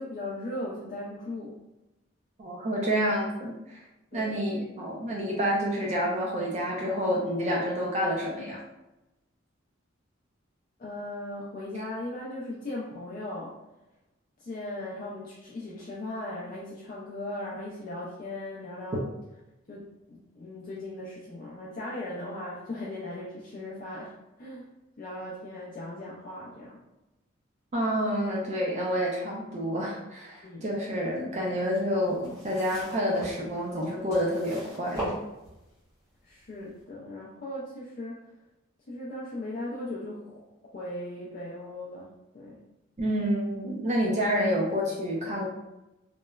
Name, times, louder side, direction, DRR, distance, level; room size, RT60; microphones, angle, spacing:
voice 1, 0.0-1.6 4.1-4.4 10.8-13.5 14.4-19.1 19.7-24.7 25.0-26.8 30.4-30.7 36.2-38.3 38.9-40.4 40.7-42.1 42.3-42.6, left 1 dB, 40° left, -6 dB, 0.4 m, -38 dB
voice 2, 2.4-3.8 4.1-8.6 27.7-35.1 43.0-45.5, equal, 35° right, -3 dB, 0.4 m, -28 dB
sound 1, 31.6-35.9 36.6-36.7, right 1 dB, 15° right, 0.9 m, -39 dB
3.0 x 2.0 x 2.2 m, 0.96 s
head